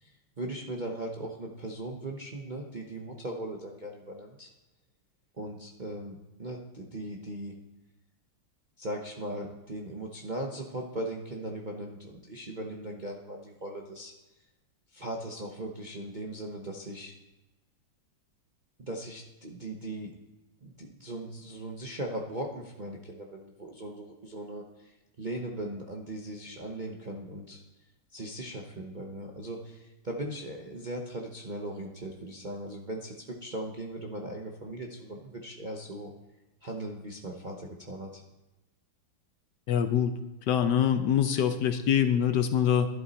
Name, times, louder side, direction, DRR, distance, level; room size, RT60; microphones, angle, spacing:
voice 1, 0.0-4.5 5.4-7.5 8.8-14.1 14.9-17.1 18.8-20.1 20.6-27.6 28.1-36.1 36.6-38.2, right 1 dB, 35° right, 0 dB, 0.7 m, -39 dB
voice 2, 39.7-40.1 40.5-42.9, left 9 dB, 70° left, 8 dB, 1.2 m, -24 dB
11.5 x 11.0 x 4.2 m, 1.0 s
omnidirectional pair, 2.2 m